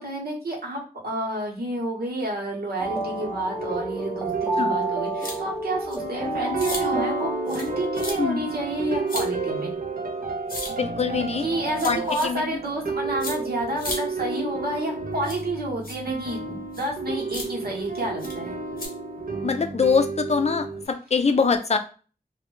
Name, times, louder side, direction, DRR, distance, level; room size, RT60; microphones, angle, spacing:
voice 1, 0.0-9.7 11.4-18.6, right 1 dB, 85° right, -2 dB, 0.8 m, -30 dB
sound 1, 2.8-8.2, right 2 dB, 15° right, 0.5 m, -30 dB
sound 2, 2.8-20.9, right 3 dB, 65° right, 0.4 m, -32 dB
sound 3, 5.2-5.4 5.9-6.0 6.6-6.8 7.5-7.7 7.9-8.1 9.1-9.3 10.5-10.7 11.7-12.3 13.2-13.3 13.8-14.0 15.2-15.4 15.8-16.0 16.7-16.9 17.3-17.5 18.2-18.3 18.8-18.9, left 2 dB, 70° left, 0.8 m, -33 dB
voice 2, 8.2-8.5 10.7-11.5 11.8-12.4 19.4-21.8, left 5 dB, 45° left, 7 dB, 0.4 m, -23 dB
2.1 x 2.0 x 3.0 m, 0.36 s
wide cardioid pair, 45°, 16 cm